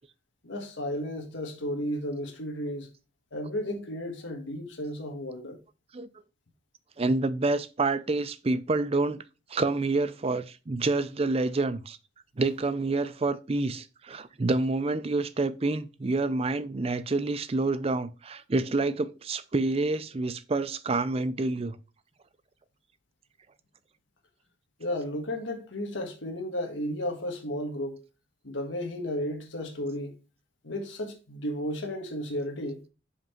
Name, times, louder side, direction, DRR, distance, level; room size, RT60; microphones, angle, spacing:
voice 1, 0.4-2.9 3.3-5.6 24.8-28.0 28.4-30.1 30.6-32.8, left 1 dB, 85° left, 1.5 m, -33 dB
voice 2, 7.0-9.2 9.5-12.0 12.4-21.8, right 3 dB, 30° right, 0.5 m, -28 dB
5.6 x 5.0 x 4.4 m
head